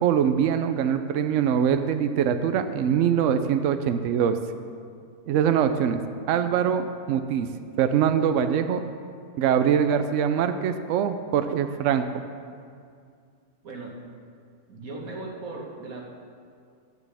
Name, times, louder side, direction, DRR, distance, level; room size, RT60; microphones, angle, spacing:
voice 1, 0.0-4.4 5.3-6.0 6.3-7.5 7.8-8.8 9.4-12.2, right 8 dB, 80° right, 9 dB, 0.6 m, -23 dB
voice 2, 13.6-14.0 14.7-16.0, right 2 dB, 55° right, -1 dB, 1.7 m, -38 dB
14.5 x 9.7 x 3.4 m, 2.3 s
omnidirectional pair, 1.8 m